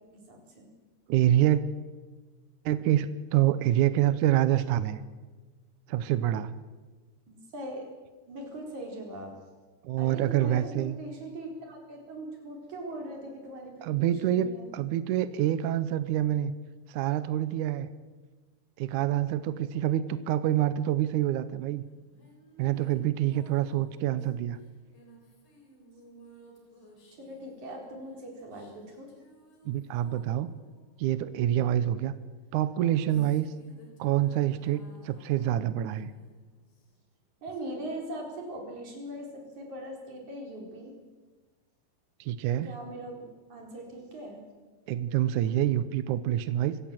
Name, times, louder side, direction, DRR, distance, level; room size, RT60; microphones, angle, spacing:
voice 1, 0.1-0.7 7.3-7.9 8.3-9.3 10.0-14.7 27.2-29.1 37.4-40.9 42.6-44.4, right 1 dB, 50° right, 1 dB, 5.5 m, -41 dB
voice 2, 1.1-1.6 2.7-5.0 5.9-6.5 9.8-11.0 13.8-16.5 16.9-17.9 18.8-21.8 22.6-24.6 29.7-30.5 31.0-32.1 32.5-33.5 34.0-36.1 42.2-42.7 44.9-46.8, right 12 dB, 80° right, 14 dB, 1.8 m, -26 dB
sound 1, 21.8-31.7 32.5-37.2, right 1 dB, 50° left, 5.0 m, -58 dB
25.5 x 16.5 x 7.6 m, 1.3 s
omnidirectional pair, 4.6 m